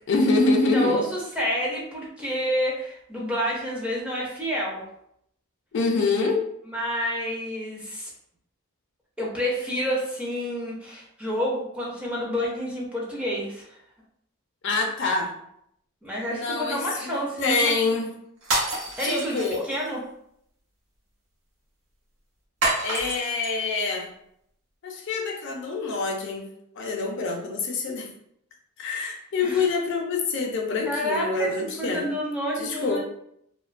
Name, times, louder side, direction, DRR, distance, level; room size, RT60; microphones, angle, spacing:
voice 1, 0.1-1.0 5.7-6.4 14.6-15.3 16.3-16.8 17.1-18.1 19.0-19.6 22.8-24.1 24.8-26.5 26.8-28.1 28.8-32.1 32.6-33.0, left 3 dB, 55° left, 1 dB, 0.4 m, -25 dB
voice 2, 0.7-4.8 6.6-8.1 9.2-13.8 16.0-18.0 19.0-20.0 29.4-29.7 30.8-33.0, equal, 5° right, -4 dB, 0.4 m, -29 dB
sound 1, 18.4-19.9 22.6-23.5, right 2 dB, 70° right, 0.7 m, -28 dB
2.4 x 2.1 x 2.4 m, 0.73 s
head